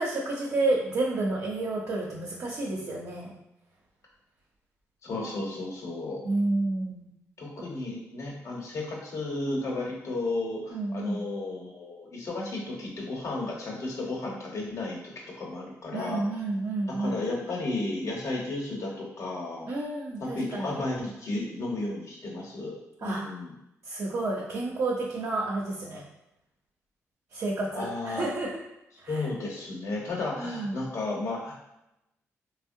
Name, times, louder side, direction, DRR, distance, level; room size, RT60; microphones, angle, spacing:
voice 1, 0.0-3.4 6.2-7.1 10.7-11.2 15.9-17.2 19.7-20.8 23.0-23.3 23.9-26.0 27.3-28.5 29.0-29.2 30.4-30.8, right 2 dB, 65° right, -4 dB, 0.6 m, -30 dB
voice 2, 5.0-6.2 7.4-15.1 15.4-16.2 17.0-19.7 20.3-23.5 27.7-28.3 29.1-31.5, left 2 dB, 60° left, -2 dB, 0.9 m, -33 dB
3.4 x 2.1 x 2.6 m, 0.86 s
supercardioid pair, 60°, 6 cm